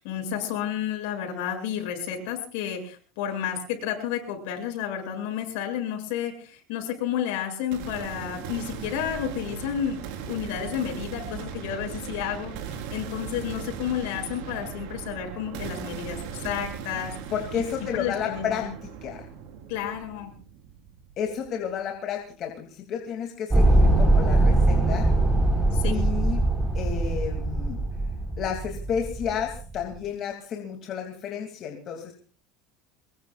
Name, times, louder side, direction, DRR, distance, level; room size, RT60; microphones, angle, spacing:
voice 1, 0.0-17.2 17.5-18.7 19.7-20.3 25.7-26.0, left 9 dB, 70° left, 4 dB, 7.5 m, -31 dB
sound 1, 7.7-21.7, right 7 dB, 70° right, 4.6 m, -38 dB
voice 2, 17.3-18.7 19.0-19.3 21.2-25.1 25.9-26.4 26.7-27.8 28.4-32.1, left 8 dB, 35° left, 2 dB, 2.8 m, -31 dB
sound 2, 23.5-29.8, right 2 dB, 10° right, 4.5 m, -22 dB
23.5 x 22.5 x 2.5 m, 0.40 s
cardioid pair, 155°, 0 cm